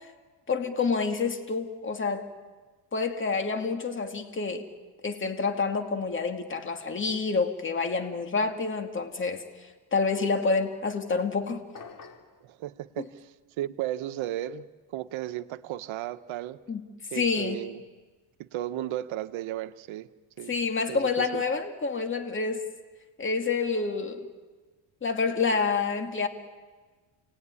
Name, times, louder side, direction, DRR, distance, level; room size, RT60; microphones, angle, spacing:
voice 1, 0.5-2.3 2.9-4.7 5.0-9.4 9.9-11.6 16.7-16.8 17.1-17.6 20.5-22.6 23.2-24.3 25.0-26.3, left 4 dB, 25° left, 5 dB, 2.5 m, -28 dB
sound 1, 11.7-12.4, left 5 dB, 40° left, 3.1 m, -45 dB
voice 2, 12.4-14.7 14.9-16.6 17.1-17.8 18.4-20.1 20.4-20.5 20.9-21.4, right 13 dB, 70° right, 11 dB, 1.3 m, -35 dB
29.0 x 20.0 x 9.9 m, 1.4 s
cardioid pair, 110°, 49 cm